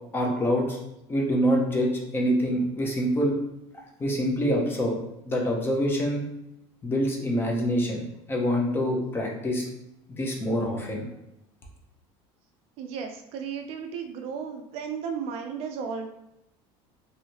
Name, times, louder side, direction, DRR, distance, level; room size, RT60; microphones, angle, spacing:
voice 1, 0.1-0.8 1.1-3.3 4.0-5.0 5.2-6.2 6.8-9.6 10.1-11.0, equal, 15° left, 0 dB, 0.6 m, -25 dB
voice 2, 12.8-16.1, right 6 dB, 50° right, 5 dB, 0.4 m, -34 dB
3.1 x 2.6 x 2.8 m, 0.86 s
cardioid pair, 160°, 13 cm